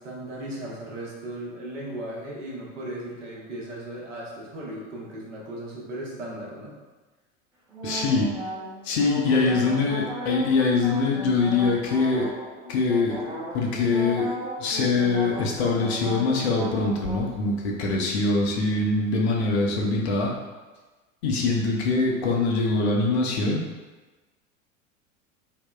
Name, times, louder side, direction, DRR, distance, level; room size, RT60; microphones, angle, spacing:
voice 1, 0.0-6.7 9.3-9.6, right 1 dB, 65° right, -5 dB, 0.9 m, -36 dB
sound 1, 7.7-17.3, right 1 dB, 10° right, 0.4 m, -36 dB
voice 2, 7.8-8.3 8.8-12.3 12.7-20.3 21.2-23.6, left 3 dB, 50° left, -1 dB, 0.6 m, -23 dB
3.6 x 2.1 x 2.2 m, 1.2 s
figure-of-eight pair, 80°, 40 cm